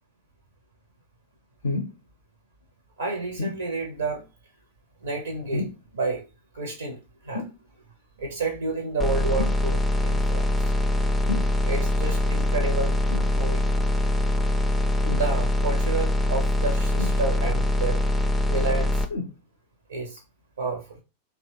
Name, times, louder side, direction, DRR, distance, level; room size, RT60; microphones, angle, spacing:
sound 1, 1.6-2.0 3.4-3.6 5.5-5.9 7.3-7.6 9.4-9.6 11.3-11.5 13.1-13.3 15.0-15.3 17.0-17.6 19.1-19.4 20.2-20.3, left 3 dB, 65° left, 0.4 m, -30 dB
voice 1, 3.0-4.3 5.0-6.3 6.5-7.0 7.2-7.5 8.2-10.7 11.6-13.0 13.3-13.7 15.1-18.0 18.5-19.1 19.9-20.2 20.6-21.0, right 3 dB, 70° right, 2 dB, 0.6 m, -30 dB
sound 2, 9.0-19.0, left 1 dB, 5° left, 0.4 m, -23 dB
2.8 x 2.1 x 2.7 m, 0.29 s
figure-of-eight pair, 90°, 0 cm